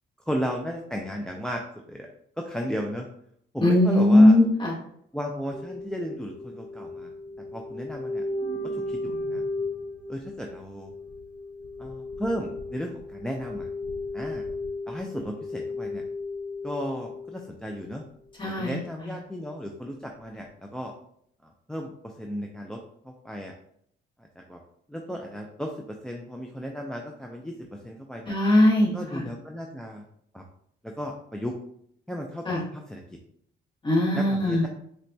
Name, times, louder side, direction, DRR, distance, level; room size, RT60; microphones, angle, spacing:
voice 1, 0.3-1.6 1.9-2.1 2.4-3.1 3.5-4.4 5.1-7.1 7.5-8.3 8.7-9.4 10.1-10.9 11.8-13.7 14.1-14.4 14.9-16.0 16.6-18.0 18.5-20.9 21.7-22.8 23.0-23.5 24.4-24.6 24.9-28.3 28.9-30.0 30.3-30.4 30.8-31.5 32.1-33.0 34.1-34.7, equal, 5° left, 1 dB, 0.3 m, -34 dB
voice 2, 3.6-4.7 18.4-18.8 28.3-29.3 32.5-32.6 33.8-34.6, left 1 dB, 25° left, -3 dB, 1.3 m, -19 dB
sound 1, 5.5-17.4 17.8-17.9, left 2 dB, 40° left, 0.8 m, -35 dB
4.0 x 2.2 x 2.6 m, 0.69 s
cardioid pair, 90°, 20 cm